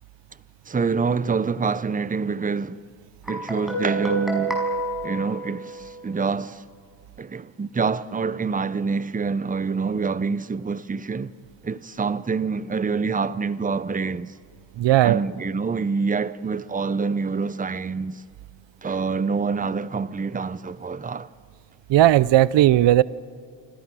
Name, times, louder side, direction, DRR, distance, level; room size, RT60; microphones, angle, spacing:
voice 1, 0.7-2.8 3.3-4.7 5.0-6.6 7.2-11.3 11.6-14.3 15.0-18.2 18.8-21.3, right 5 dB, 15° right, 0.6 m, -26 dB
Guitar, 3.3-6.1, right 2 dB, ahead, 5.7 m, -28 dB
voice 2, 14.8-15.2 21.9-23.0, right 14 dB, 65° right, 0.6 m, -16 dB
29.0 x 26.5 x 6.2 m
cardioid pair, 120°, 47 cm